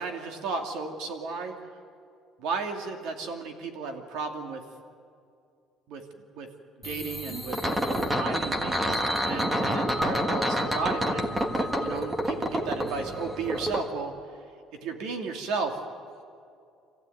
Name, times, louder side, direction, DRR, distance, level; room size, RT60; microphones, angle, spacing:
voice 1, 0.0-1.6 2.4-4.6 5.9-6.0 6.3-6.5 6.8-14.2 14.8-15.8, right 4 dB, 85° right, 4 dB, 2.6 m, -34 dB
sound 1, 6.8-13.8, equal, 10° right, 1.5 m, -28 dB
27.0 x 15.0 x 9.3 m, 2.4 s
cardioid pair, 165°, 0 cm